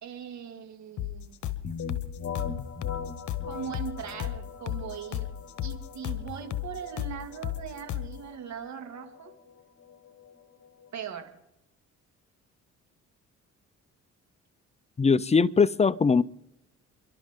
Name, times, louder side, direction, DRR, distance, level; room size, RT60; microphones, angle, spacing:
voice 1, 0.0-1.9 3.4-5.3 5.6-9.3 10.9-11.3, right 8 dB, 65° right, 2.5 m, -40 dB
sound 1, 1.0-8.2, left 12 dB, 70° left, 1.1 m, -34 dB
sound 2, 1.6-11.2, left 6 dB, 50° left, 1.8 m, -41 dB
voice 2, 15.0-16.2, left 5 dB, 20° left, 0.5 m, -21 dB
28.5 x 12.0 x 3.8 m
cardioid pair, 90°, 30 cm